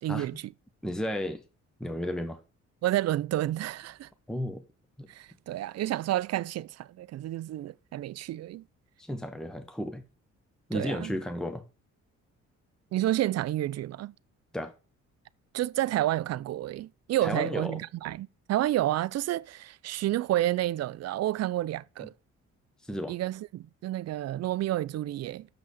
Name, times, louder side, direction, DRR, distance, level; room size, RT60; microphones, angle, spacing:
voice 1, 0.0-0.5 2.8-4.1 5.1-8.6 10.7-11.1 12.9-14.1 15.5-22.1 23.1-25.5, right 14 dB, 55° right, 0.5 m, -30 dB
voice 2, 0.8-1.4 1.8-2.4 4.3-4.6 5.0-5.1 9.0-10.0 10.7-11.6 14.5-14.7 17.2-17.8 22.8-23.2, left 1 dB, ahead, 0.9 m, -33 dB
7.0 x 6.1 x 6.4 m
cardioid pair, 90°, 30 cm